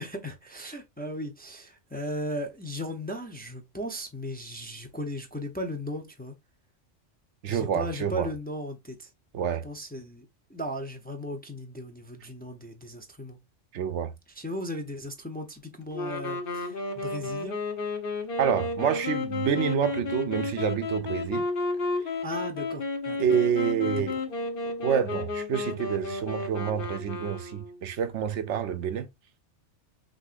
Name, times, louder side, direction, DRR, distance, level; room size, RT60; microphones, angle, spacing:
voice 1, 0.0-6.3 7.5-9.1 9.6-10.2 10.5-13.4 14.3-17.6 22.2-23.4 24.0-24.1, equal, 10° left, 0.6 m, -36 dB
voice 2, 7.4-8.3 9.3-9.6 13.7-14.1 18.4-21.5 23.2-24.2 24.8-29.1, right 8 dB, 80° right, 1.0 m, -28 dB
sound 1, 15.9-27.8, left 3 dB, 50° left, 1.1 m, -32 dB
6.1 x 3.0 x 2.5 m
omnidirectional pair, 1.2 m